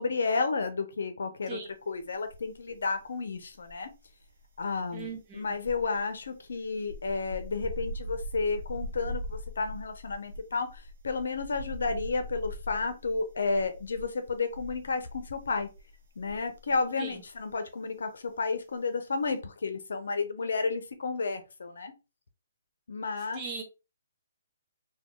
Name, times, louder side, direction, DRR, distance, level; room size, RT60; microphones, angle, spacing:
voice 1, 0.0-1.6 1.9-3.9 4.6-15.7 16.2-21.9 22.9-23.4, left 4 dB, 75° left, 0.7 m, -32 dB
sound 1, 2.2-3.0 3.3-16.8 17.1-17.4, equal, 65° right, 0.8 m, -41 dB
voice 2, 4.9-5.6 17.0-17.2 23.3-23.6, right 5 dB, 20° right, 0.8 m, -39 dB
3.4 x 2.3 x 2.3 m
hypercardioid pair, 165°, 0 cm